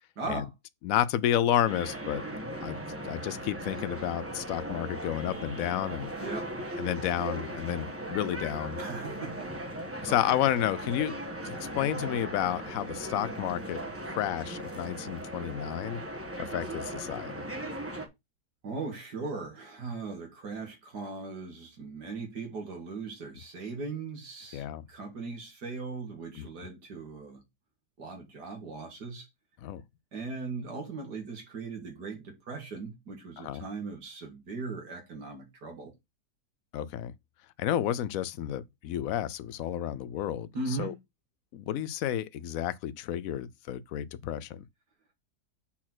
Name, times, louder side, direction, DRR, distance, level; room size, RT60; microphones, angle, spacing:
voice 1, 0.2-0.5 6.2-6.5 8.8-9.5 10.1-10.4 18.6-27.4 28.0-29.3 30.1-35.9 40.5-41.0, right 3 dB, 70° right, 2.5 m, -39 dB
voice 2, 0.8-2.2 2.6-2.8 3.0-6.1 6.8-8.8 10.0-11.1 11.4-13.8 14.1-16.0 16.5-17.4 24.5-24.8 26.4-26.5 29.6-29.8 33.4-33.6 36.7-37.1 37.6-40.5 40.8-40.9 41.5-44.6, left 11 dB, 65° left, 0.9 m, -31 dB
sound 1, 1.6-18.1, right 1 dB, 10° right, 1.2 m, -38 dB
5.7 x 4.3 x 6.1 m
omnidirectional pair, 1.8 m